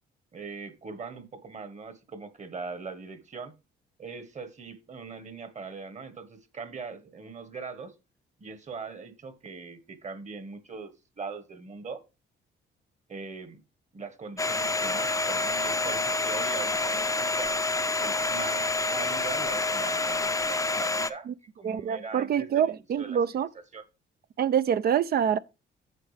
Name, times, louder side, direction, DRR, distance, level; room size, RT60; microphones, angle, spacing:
voice 1, 0.3-3.5 4.0-7.9 8.4-12.0 13.1-13.6 13.9-17.5 18.0-23.2 23.7-23.8, right 4 dB, 35° right, 1.3 m, -41 dB
Domestic sounds home sounds, 14.4-21.1, left 3 dB, 15° left, 0.5 m, -28 dB
voice 2, 21.6-23.5 24.4-25.4, right 8 dB, 50° right, 0.4 m, -26 dB
9.1 x 6.1 x 3.3 m
cardioid pair, 90°, 20 cm